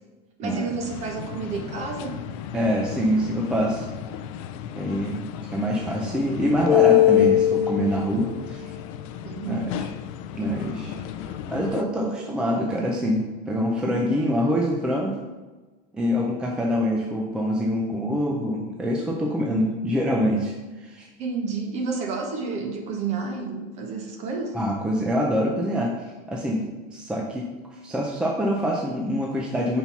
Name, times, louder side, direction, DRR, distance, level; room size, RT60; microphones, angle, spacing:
voice 1, 0.4-2.2 9.2-9.8 21.2-24.6, right 4 dB, 35° right, 3 dB, 1.0 m, -30 dB
sound 1, 0.8-11.8, left 13 dB, 60° left, 0.4 m, -26 dB
voice 2, 2.5-3.9 4.8-8.7 9.4-9.9 10.3-10.9 11.5-15.2 15.9-21.1 24.5-29.8, equal, 5° right, -1 dB, 0.4 m, -25 dB
5.4 x 4.5 x 5.6 m, 1.2 s
cardioid pair, 175°, 19 cm